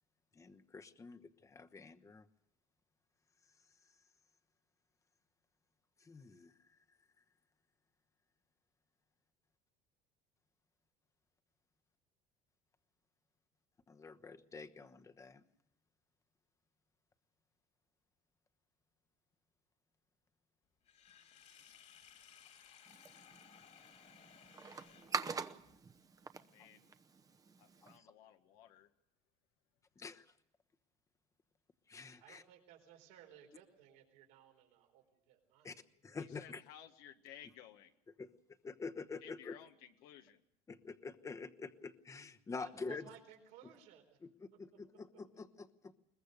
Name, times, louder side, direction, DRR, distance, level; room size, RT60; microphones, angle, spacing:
voice 1, 0.4-2.3 6.0-6.5 13.9-15.4 27.8-28.1 30.0-30.2 31.9-32.4 35.6-35.7 36.0-36.6 38.2-38.3 38.6-39.6 40.7-43.0 44.2-44.3 44.6-45.7, left 4 dB, 20° left, 8 dB, 1.1 m, -47 dB
Sink (filling or washing), 20.8-25.8, left 9 dB, 50° left, 2.5 m, -61 dB
sound 1, 22.9-28.0, right 5 dB, 25° right, 0.9 m, -45 dB
voice 2, 26.4-26.9 27.6-28.9 36.2-37.9 39.2-40.4, left 10 dB, 85° left, 6 dB, 1.6 m, -57 dB
voice 3, 32.2-35.9 42.6-44.2 45.3-45.4, right 10 dB, 90° right, 3 dB, 4.3 m, -59 dB
22.0 x 20.5 x 6.7 m, 0.76 s
cardioid pair, 125°, 15 cm